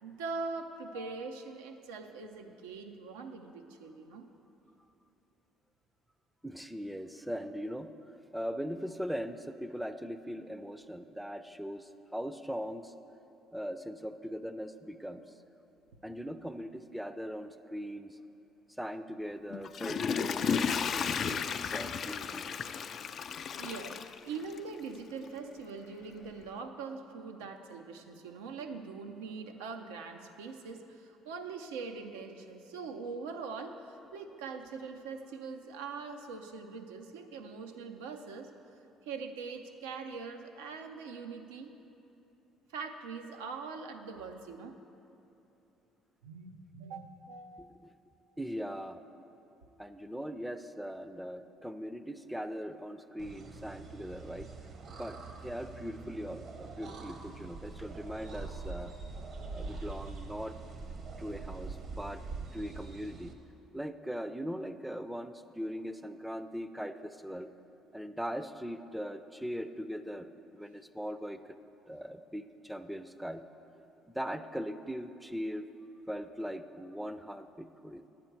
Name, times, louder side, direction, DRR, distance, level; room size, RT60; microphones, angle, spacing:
voice 1, 0.0-4.3 23.5-38.5 39.0-41.7 42.7-44.7 46.2-47.7, right 4 dB, 85° right, 5 dB, 0.6 m, -42 dB
voice 2, 6.4-7.9 8.3-12.9 13.5-15.2 16.0-18.2 18.8-22.4 47.6-47.7 48.4-49.0 49.8-54.5 54.9-58.9 59.5-60.6 61.2-62.2 62.5-63.3 63.7-67.5 67.9-71.6 71.9-73.4 74.1-75.7 76.1-78.1, equal, 5° right, 11 dB, 0.5 m, -40 dB
Water / Toilet flush, 19.5-24.8 25.3-25.4, left 6 dB, 50° left, 0.4 m, -33 dB
sound 1, 53.2-63.3, right 4 dB, 55° right, 1.0 m, -44 dB
10.5 x 7.7 x 4.6 m, 2.9 s
hypercardioid pair, 60°, 0 cm